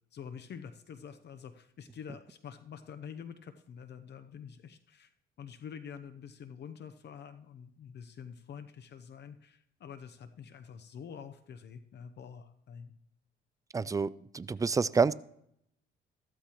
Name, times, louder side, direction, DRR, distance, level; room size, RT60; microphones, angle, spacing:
voice 1, 0.1-5.1 5.4-13.0 13.8-13.9, left 7 dB, 60° left, 9 dB, 0.7 m, -47 dB
voice 2, 13.7-15.1, right 5 dB, 15° right, 18 dB, 0.3 m, -28 dB
14.0 x 13.0 x 3.0 m, 0.74 s
cardioid pair, 90°, 20 cm